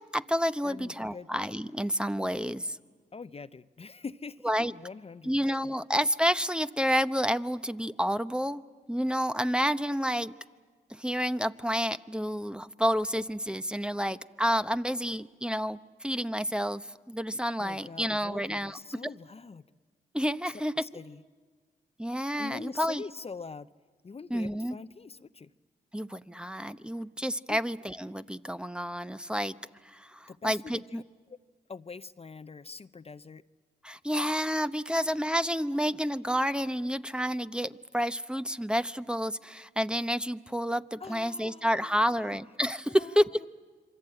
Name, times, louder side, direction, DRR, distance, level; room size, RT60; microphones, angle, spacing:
voice 1, 0.0-2.8 4.4-4.7 5.2-8.6 8.9-10.3 10.9-19.0 20.1-20.7 22.0-23.0 24.3-24.8 25.9-29.6 29.8-31.0 33.8-43.5, equal, 5° right, 12 dB, 0.8 m, -29 dB
voice 2, 0.6-1.3 3.1-5.3 5.6-5.7 17.6-19.7 20.5-20.6 20.8-21.2 22.4-23.7 24.0-25.5 27.5-27.6 30.3-31.4 31.7-33.4 41.0-42.4 42.9-43.5, left 4 dB, 35° left, 13 dB, 0.7 m, -44 dB
27.0 x 24.0 x 8.9 m, 1.5 s
supercardioid pair, 50°, 17 cm